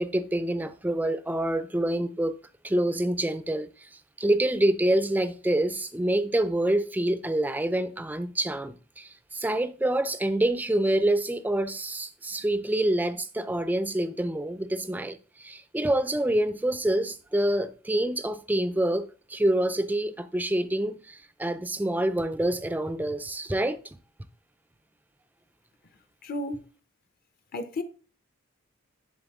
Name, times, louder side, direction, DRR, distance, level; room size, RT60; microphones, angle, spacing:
voice 1, 0.0-2.3 2.6-24.0, right 1 dB, 10° right, 0.3 m, -27 dB
voice 2, 26.2-26.7 27.5-27.8, left 2 dB, 45° left, 0.6 m, -32 dB
10.5 x 4.0 x 3.5 m
head